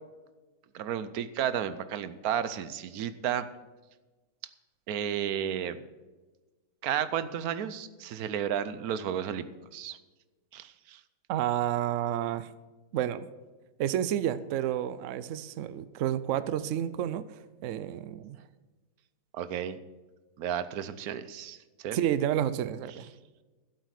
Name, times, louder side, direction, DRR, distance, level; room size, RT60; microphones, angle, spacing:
voice 1, 0.7-3.5 4.9-5.8 6.8-9.5 9.7-10.0 10.5-11.0 19.3-19.8 20.4-22.0, right 9 dB, 65° right, 14 dB, 1.0 m, -32 dB
voice 2, 11.3-12.5 12.9-13.3 13.8-18.4 21.9-23.1, right 11 dB, 85° right, 16 dB, 0.6 m, -30 dB
12.5 x 8.0 x 6.5 m, 1.2 s
omnidirectional pair, 1.9 m